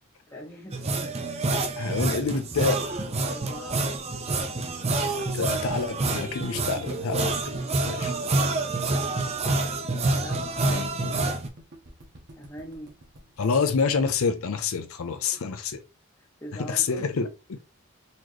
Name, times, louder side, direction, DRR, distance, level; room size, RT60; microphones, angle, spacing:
voice 1, 0.3-0.9 3.2-3.9 10.2-10.7 12.3-12.9 15.2-15.5 16.2-17.1, equal, 15° left, 0.6 m, -42 dB
sound 1, 0.7-11.5, right 2 dB, 30° right, 0.5 m, -27 dB
voice 2, 1.8-2.8 5.2-7.6 7.8-8.1 10.6-11.2 13.4-15.8 16.5-17.6, left 5 dB, 70° left, 0.5 m, -28 dB
sound 2, 2.2-14.4, equal, 50° right, 1.0 m, -49 dB
4.1 x 3.0 x 3.0 m
head